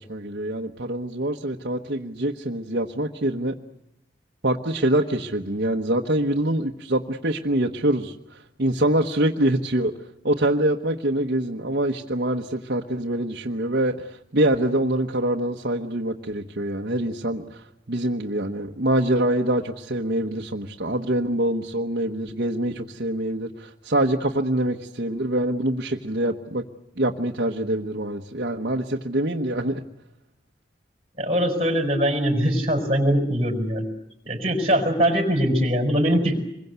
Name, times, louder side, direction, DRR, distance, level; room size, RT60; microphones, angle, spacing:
voice 1, 0.0-3.5 4.4-9.9 10.2-26.6 27.0-29.8, right 1 dB, 60° right, 0 dB, 1.2 m, -25 dB
voice 2, 31.2-33.9 34.3-36.4, equal, 35° right, 5 dB, 5.3 m, -22 dB
26.0 x 22.5 x 8.2 m, 0.84 s
head